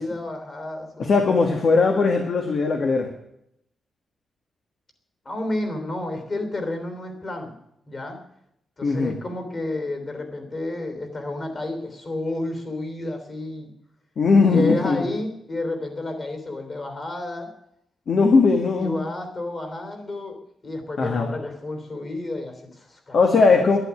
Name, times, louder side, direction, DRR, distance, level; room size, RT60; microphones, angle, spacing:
voice 1, 0.0-1.6 5.2-7.5 7.9-8.2 8.8-13.7 14.4-17.5 18.8-23.6, left 2 dB, 30° left, 6 dB, 3.4 m, -31 dB
voice 2, 1.0-3.1 8.8-9.2 14.2-15.1 18.1-19.0 21.0-21.3 23.1-23.8, left 4 dB, 50° left, 3 dB, 1.9 m, -19 dB
11.0 x 11.0 x 9.8 m, 0.77 s
wide cardioid pair, 150°, 0 cm